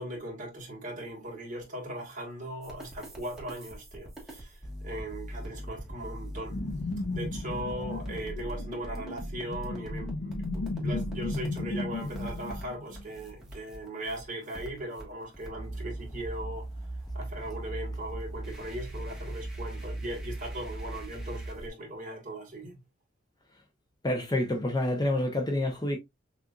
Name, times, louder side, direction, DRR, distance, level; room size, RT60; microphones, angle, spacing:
voice 1, 0.0-6.6 7.1-16.7 17.1-22.8, right 1 dB, 40° right, 1.6 m, -39 dB
sound 1, 2.6-21.7, right 1 dB, ahead, 1.3 m, -40 dB
sound 2, 6.5-13.3, left 2 dB, 75° left, 0.7 m, -35 dB
voice 2, 24.0-26.0, left 1 dB, 20° left, 0.7 m, -28 dB
6.2 x 2.5 x 2.4 m
head